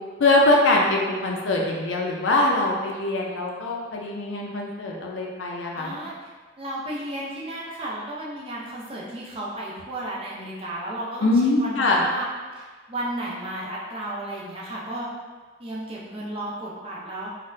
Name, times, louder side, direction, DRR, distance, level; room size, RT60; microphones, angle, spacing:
voice 1, 0.2-6.0 11.2-12.1, left 2 dB, 75° left, -1 dB, 0.5 m, -22 dB
voice 2, 5.8-6.1 6.6-12.3 12.5-15.1 15.6-17.3, right 1 dB, 30° right, -5 dB, 0.6 m, -33 dB
4.0 x 2.1 x 2.6 m, 1.4 s
head